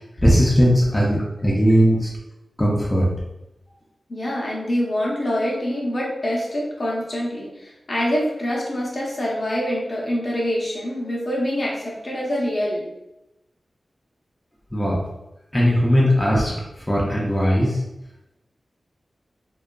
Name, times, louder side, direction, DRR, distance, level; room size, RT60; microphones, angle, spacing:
voice 1, 0.2-2.1 2.6-3.1 14.7-15.0 15.5-16.6 16.9-17.8, equal, 15° left, -5 dB, 0.5 m, -18 dB
voice 2, 4.1-12.9, equal, 45° left, -4 dB, 0.7 m, -25 dB
2.6 x 2.3 x 2.2 m, 0.91 s
wide cardioid pair, 95°, 0 cm